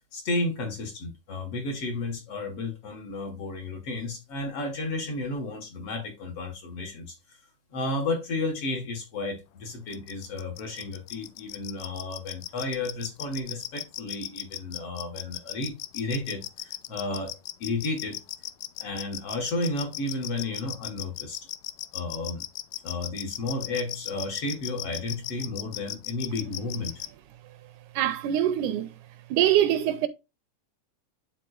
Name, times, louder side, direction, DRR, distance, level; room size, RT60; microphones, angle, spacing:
voice 1, 0.1-7.4 7.7-18.2 18.8-21.4 21.9-22.4 22.8-27.0, left 2 dB, 55° left, 2.0 m, -32 dB
sound 1, 9.9-27.1, left 16 dB, 90° left, 1.6 m, -36 dB
voice 2, 28.0-28.9 29.3-30.1, right 11 dB, 80° right, 1.9 m, -23 dB
11.0 x 3.8 x 2.4 m
omnidirectional pair, 3.7 m